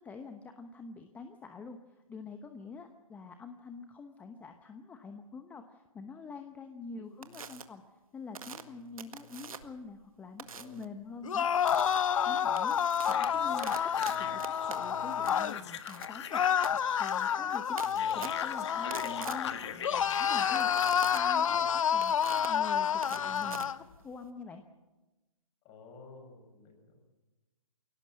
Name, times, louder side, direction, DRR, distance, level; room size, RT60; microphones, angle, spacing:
voice 1, 0.0-7.8 8.1-11.5 11.8-12.8 13.1-13.8 14.2-16.4 17.0-17.9 18.1-20.7 21.1-24.6, left 4 dB, 10° left, 7 dB, 0.9 m, -46 dB
sound 1, 7.2-7.6 8.3-9.8 10.4-10.9 11.7-12.0 12.4-24.3, right 5 dB, 80° right, 1.8 m, -46 dB
voice 2, 10.4-10.8 18.2-18.3 21.4-21.7 25.6-27.0, left 4 dB, 25° left, 3 dB, 6.4 m, -53 dB
sound 2, 11.2-15.6 16.3-19.5 19.8-23.8, left 8 dB, 70° left, 0.7 m, -29 dB
sound 3, 13.1-21.5, left 9 dB, 50° left, 1.7 m, -41 dB
22.5 x 17.5 x 7.6 m, 1.1 s
hypercardioid pair, 145°, 18 cm